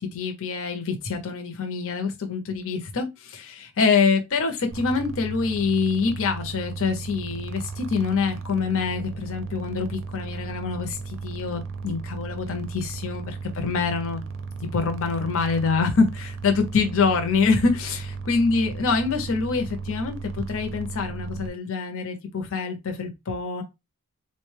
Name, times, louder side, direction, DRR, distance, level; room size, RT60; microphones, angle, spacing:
voice 1, 0.1-14.2 14.7-23.6, left 4 dB, 65° left, 0.6 m, -25 dB
sound 1, 4.7-21.5, right 4 dB, 60° right, 0.4 m, -35 dB
3.7 x 2.1 x 3.2 m
head